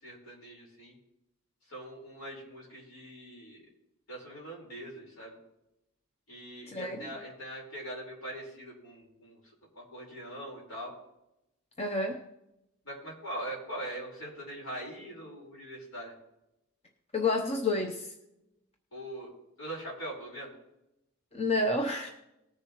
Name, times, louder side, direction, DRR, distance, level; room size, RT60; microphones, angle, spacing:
voice 1, 0.0-1.0 1.7-3.6 4.1-5.4 6.3-9.4 9.7-10.9 12.8-16.1 18.9-19.3 19.6-20.5, right 1 dB, 70° left, -3 dB, 4.5 m, -42 dB
voice 2, 6.7-7.1 11.8-12.2 17.1-18.1 21.3-22.1, left 2 dB, 30° left, 2 dB, 0.8 m, -29 dB
19.5 x 6.9 x 3.1 m, 0.89 s
head